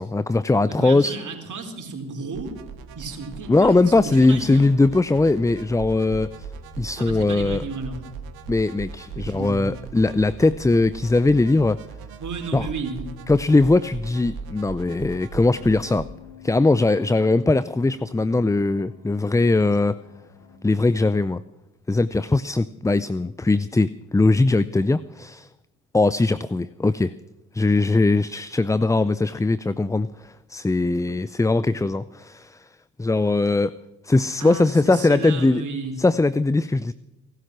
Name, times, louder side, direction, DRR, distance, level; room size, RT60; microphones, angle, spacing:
voice 1, 0.0-1.2 3.5-6.5 6.8-7.6 8.5-11.8 12.5-12.7 13.3-16.1 16.4-20.0 20.6-21.4 21.9-25.5 25.9-27.1 27.5-32.7 33.0-33.8 34.0-35.6 36.0-36.9, left 2 dB, 10° left, 0.5 m, -20 dB
voice 2, 0.8-2.6 3.0-4.7 7.0-8.0 9.2-9.7 12.2-13.1 34.4-36.0, right 4 dB, 55° right, 3.9 m, -33 dB
sound 1, 2.3-16.0, right 5 dB, 75° right, 1.7 m, -39 dB
sound 2, 15.3-20.6, left 9 dB, 70° left, 4.1 m, -47 dB
18.5 x 13.0 x 6.1 m
hypercardioid pair, 45°, 37 cm